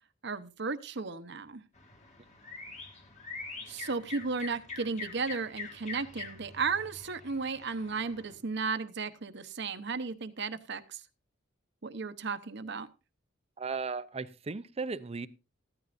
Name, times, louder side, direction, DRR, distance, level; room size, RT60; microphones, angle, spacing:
voice 1, 0.2-1.6 3.7-11.0 11.8-12.9, right 4 dB, 60° right, 0.9 m, -34 dB
sound 1, 1.7-8.3, left 4 dB, 35° left, 2.5 m, -45 dB
voice 2, 13.6-15.3, right 4 dB, 30° right, 0.6 m, -36 dB
15.5 x 13.0 x 2.6 m
head